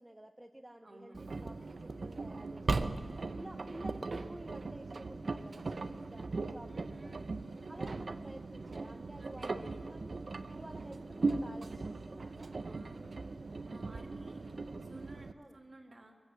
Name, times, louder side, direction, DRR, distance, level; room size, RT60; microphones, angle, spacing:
voice 1, 0.0-1.5 1.8-3.0 3.3-7.3 7.7-10.2 10.5-12.5 15.3-15.6, right 1 dB, 15° right, 4 dB, 0.6 m, -51 dB
voice 2, 0.8-1.2 6.7-7.4 9.2-9.8 12.6-13.3 13.6-16.1, right 2 dB, 40° right, 1 dB, 2.2 m, -55 dB
Engine, 1.1-15.3, right 3 dB, 65° right, 0.7 m, -39 dB
23.0 x 8.0 x 7.5 m, 2.1 s
wide cardioid pair, 70°, 0 cm